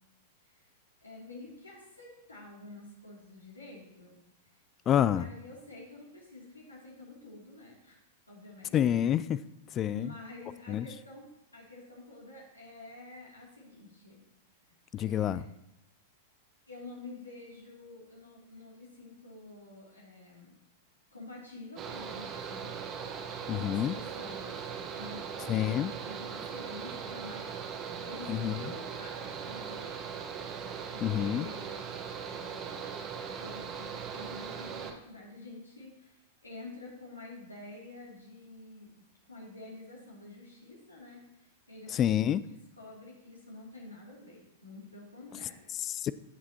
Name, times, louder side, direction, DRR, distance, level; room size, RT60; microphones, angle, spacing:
voice 1, 1.0-4.2 5.0-8.0 8.3-8.7 9.9-14.2 14.7-15.4 16.7-20.6 21.1-22.7 23.5-24.7 24.9-30.2 30.9-31.9 32.2-32.8 33.4-42.2 42.8-45.7, left 2 dB, 90° left, -4 dB, 2.7 m, -49 dB
voice 2, 4.9-5.3 8.7-9.4 9.7-10.1 10.7-10.9 14.9-15.5 23.5-24.0 25.5-25.9 28.3-28.5 31.0-31.5 41.9-42.4 45.7-46.1, left 10 dB, 30° left, 16 dB, 0.3 m, -28 dB
Mechanical fan, 21.8-34.9, right 6 dB, 35° right, 1.2 m, -39 dB
16.0 x 7.1 x 2.9 m, 0.88 s
figure-of-eight pair, 95°, 0 cm